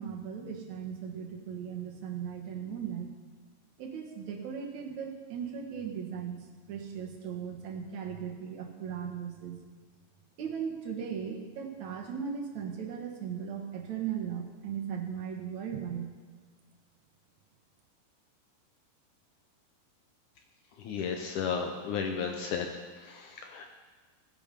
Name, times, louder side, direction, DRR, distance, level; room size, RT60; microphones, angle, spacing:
voice 1, 0.0-3.1 3.8-9.6 10.4-16.1, right 7 dB, 60° right, 1 dB, 2.3 m, -37 dB
voice 2, 20.8-22.7 23.0-23.7, left 6 dB, 90° left, 4 dB, 1.7 m, -33 dB
18.5 x 10.5 x 5.3 m, 1.4 s
omnidirectional pair, 4.8 m